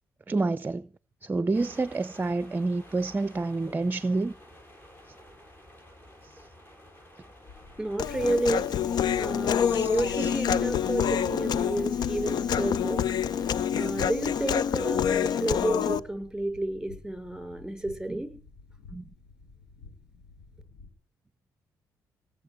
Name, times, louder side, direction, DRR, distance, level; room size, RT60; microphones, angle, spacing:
voice 1, 0.3-0.8 1.2-4.3 9.7-9.9 10.2-10.3 18.1-18.2 18.9-19.0, right 3 dB, 25° right, 0.6 m, -28 dB
sound 1, 1.5-14.1, left 1 dB, 25° left, 7.0 m, -52 dB
sound 2, 7.4-20.9, left 4 dB, 80° left, 3.1 m, -51 dB
voice 2, 7.8-8.7 9.2-13.0 13.7-18.3, right 1 dB, 5° right, 5.8 m, -31 dB
Human voice, 8.0-16.0, left 8 dB, 65° left, 0.7 m, -27 dB
18.5 x 7.4 x 8.2 m
supercardioid pair, 60°, 8 cm